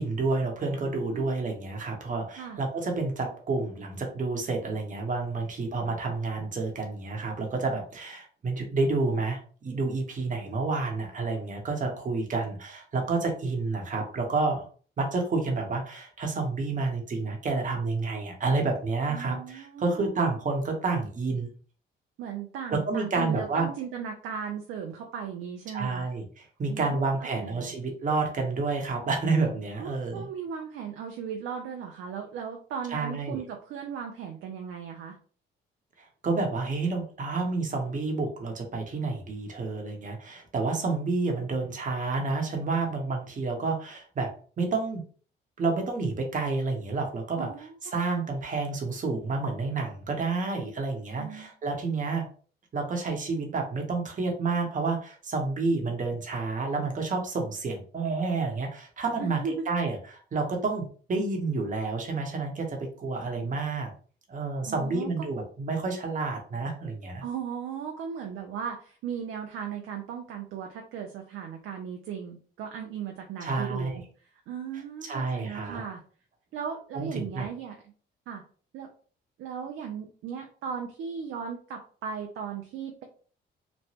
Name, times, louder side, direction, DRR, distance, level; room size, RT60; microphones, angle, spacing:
voice 1, 0.0-14.6 15.0-21.5 22.7-23.7 25.7-30.3 32.9-33.4 36.2-44.3 44.6-45.0 45.6-52.3 52.7-59.4 59.7-63.9 64.3-67.2 73.4-74.0 75.0-75.8 76.9-77.5, right 3 dB, 40° right, 2 dB, 0.9 m, -29 dB
voice 2, 19.1-20.3 22.2-26.1 26.7-27.1 27.4-27.7 29.8-35.2 47.4-47.8 51.2-51.5 59.2-59.6 63.4-63.5 64.7-65.3 67.2-74.0 74.5-76.0 76.5-77.8 78.3-78.4 78.7-78.9 79.4-83.0, right 7 dB, 80° right, 3 dB, 0.5 m, -37 dB
3.0 x 2.1 x 2.8 m, 0.42 s
cardioid pair, 90°, 20 cm